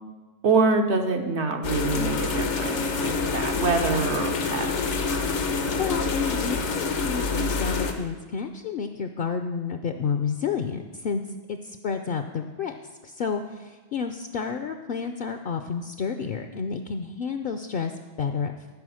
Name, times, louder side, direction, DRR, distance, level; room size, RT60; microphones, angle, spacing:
voice 1, 0.4-4.9, right 4 dB, 75° right, 4 dB, 1.2 m, -25 dB
sound 1, 1.6-7.9, left 4 dB, 85° left, 1.2 m, -27 dB
voice 2, 5.8-11.2 11.5-12.7 13.0-17.9 18.2-18.5, left 6 dB, 60° left, 8 dB, 0.7 m, -30 dB
13.0 x 5.0 x 6.3 m, 1.4 s
omnidirectional pair, 1.2 m